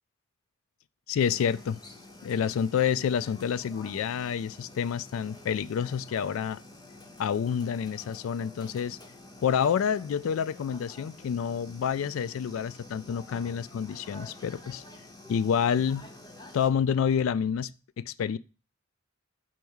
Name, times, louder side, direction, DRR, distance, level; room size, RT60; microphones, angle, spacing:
voice 1, 1.1-1.8 2.2-6.6 7.2-9.0 9.4-14.8 15.3-16.1 16.5-17.7 18.0-18.4, left 7 dB, 85° left, 0.3 m, -28 dB
sound 1, 1.2-16.7, left 2 dB, 20° left, 0.6 m, -49 dB
4.6 x 4.5 x 5.4 m
head